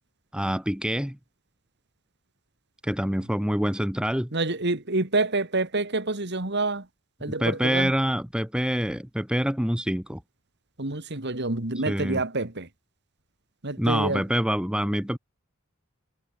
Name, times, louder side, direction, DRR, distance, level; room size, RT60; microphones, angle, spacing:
voice 1, 0.3-1.2 2.8-4.3 7.4-10.2 11.9-12.2 13.8-15.2, equal, 5° right, 1.5 m, -26 dB
voice 2, 4.3-6.9 7.2-7.9 10.8-12.7 13.6-14.2, right 2 dB, 55° right, 2.4 m, -27 dB
head